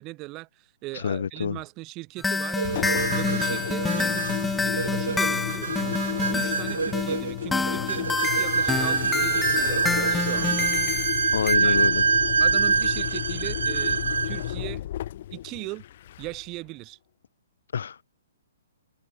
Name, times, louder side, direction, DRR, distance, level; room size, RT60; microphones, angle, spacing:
voice 1, 0.0-6.0 6.3-10.7 11.6-11.9 12.4-14.8 15.3-15.8 16.2-17.0, right 21 dB, 30° right, 2.9 m, -39 dB
voice 2, 0.9-1.6 11.3-12.0 17.7-18.0, left 7 dB, 65° left, 0.9 m, -27 dB
sound 1, 2.2-11.6, left 3 dB, 5° left, 1.3 m, -28 dB
Engine, 2.6-16.6, left 12 dB, 50° left, 2.7 m, -33 dB
sound 2, 2.6-14.5, right 5 dB, 75° right, 1.3 m, -26 dB
figure-of-eight pair, 125°, 0 cm